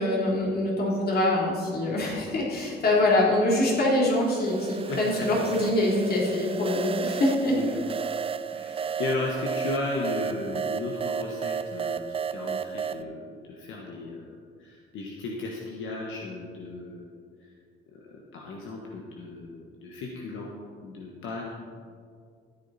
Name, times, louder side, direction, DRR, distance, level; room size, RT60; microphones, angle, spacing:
voice 1, 0.0-7.5, left 1 dB, 50° left, -4 dB, 3.3 m, -24 dB
sound 1, 3.9-13.0, right 7 dB, 30° right, 0.4 m, -33 dB
voice 2, 4.9-5.3 7.5-7.9 8.5-12.0 12.3-14.3 14.6-17.0 17.4-17.5 17.9-20.5 20.8-21.5, left 3 dB, 80° left, -1 dB, 1.4 m, -35 dB
14.0 x 9.1 x 4.2 m, 2.2 s
cardioid pair, 90°, 20 cm